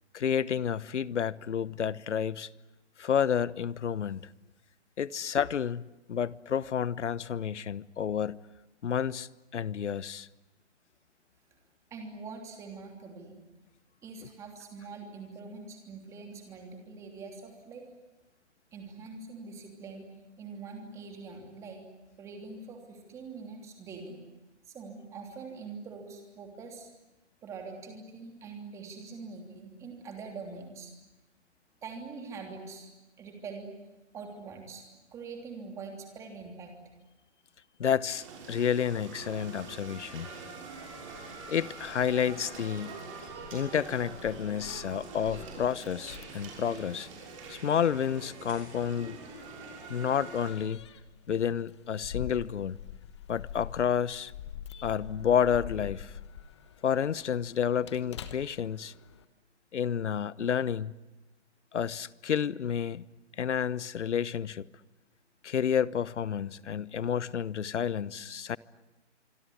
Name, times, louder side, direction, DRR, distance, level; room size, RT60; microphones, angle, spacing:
voice 1, 0.1-2.5 3.0-4.2 5.0-8.4 8.8-10.3 37.8-40.3 41.5-43.0 43.5-47.1 47.5-49.4 49.9-50.8 51.3-52.8 53.3-54.3 54.7-56.1 56.8-58.9 59.7-60.9 61.7-63.0 63.4-64.7 65.4-68.6, left 8 dB, 85° left, 1.1 m, -30 dB
voice 2, 11.9-13.4 14.0-17.9 18.7-20.0 20.4-21.9 22.2-24.2 24.6-26.9 27.4-30.9 31.8-32.9 33.2-33.7 34.1-34.8 35.1-36.8, right 4 dB, 10° right, 3.1 m, -44 dB
sound 1, 38.1-50.5, right 4 dB, 30° right, 6.6 m, -45 dB
Keys jangling, 40.3-59.2, left 9 dB, 25° left, 1.2 m, -46 dB
26.0 x 23.5 x 9.6 m
hypercardioid pair, 175°, 35 cm